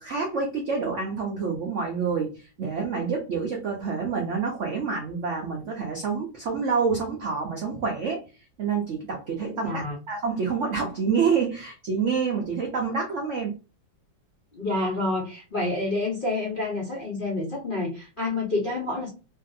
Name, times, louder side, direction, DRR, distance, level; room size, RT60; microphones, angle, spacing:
voice 1, 0.0-8.2 8.6-13.6, right 5 dB, 80° right, 0 dB, 0.6 m, -27 dB
voice 2, 9.6-10.0 14.5-19.1, left 2 dB, 50° left, -3 dB, 0.6 m, -28 dB
3.0 x 2.6 x 2.4 m, 0.32 s
omnidirectional pair, 2.1 m